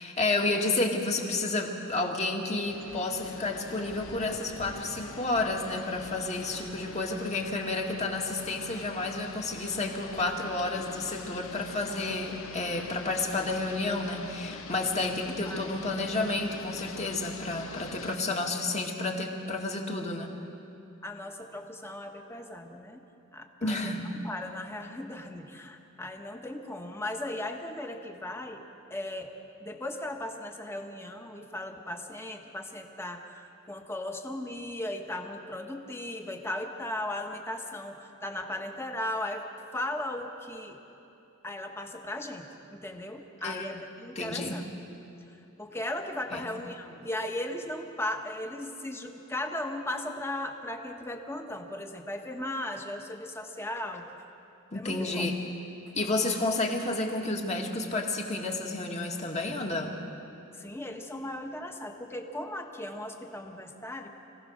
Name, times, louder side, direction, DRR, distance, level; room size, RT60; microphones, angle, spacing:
voice 1, 0.0-20.3 23.6-24.1 43.4-43.7 44.2-44.6 46.3-46.4 54.7-55.3 55.9-60.0, left 2 dB, 35° left, 1 dB, 2.1 m, -31 dB
sound 1, 2.7-18.1, left 3 dB, 70° left, 1.2 m, -44 dB
voice 2, 15.3-15.7 21.0-23.0 23.3-23.9 24.2-28.6 28.9-29.3 29.6-40.8 41.4-44.6 45.6-54.1 54.7-55.3 60.6-64.1, left 1 dB, 10° left, 4 dB, 1.3 m, -37 dB
26.0 x 16.5 x 6.6 m, 2.8 s
head